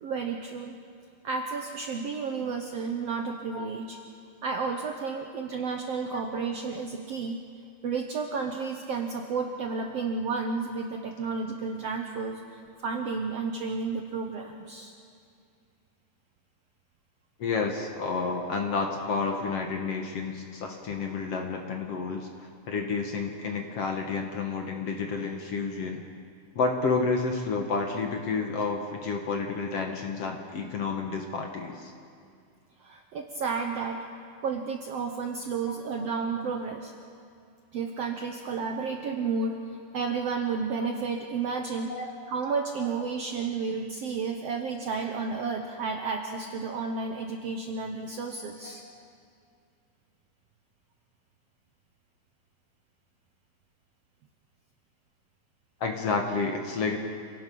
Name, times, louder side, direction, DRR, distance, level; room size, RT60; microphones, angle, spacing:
voice 1, 0.0-0.8 1.2-4.0 4.4-7.4 7.8-14.9 32.8-34.0 34.4-36.9 37.7-42.0 42.3-48.8, right 5 dB, 70° right, 3 dB, 1.5 m, -32 dB
voice 2, 17.4-26.0 26.6-31.9 35.6-36.0 36.4-36.5 41.5-41.6 41.9-42.1 42.8-42.9 48.6-48.7 55.8-57.0, left 4 dB, 55° left, 3 dB, 1.9 m, -30 dB
28.0 x 18.0 x 5.4 m, 2.3 s
omnidirectional pair, 4.0 m